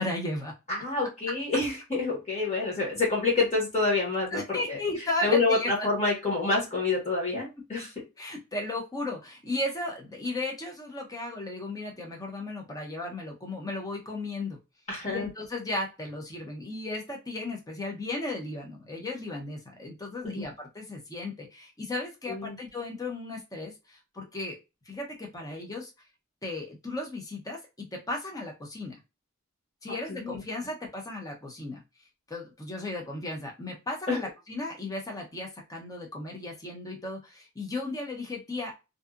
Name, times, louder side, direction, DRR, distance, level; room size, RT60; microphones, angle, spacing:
voice 1, 0.0-0.5 4.3-5.9 8.2-14.6 15.0-24.6 24.9-25.9 26.4-29.0 29.8-31.8 32.3-38.7, left 2 dB, 15° left, 0 dB, 0.7 m, -35 dB
voice 2, 0.7-4.8 5.2-7.9 14.9-15.3 20.2-20.5 22.3-22.6 30.1-30.4 34.1-34.2, left 3 dB, 30° left, -4 dB, 1.1 m, -27 dB
2.7 x 2.3 x 2.3 m, 0.26 s
head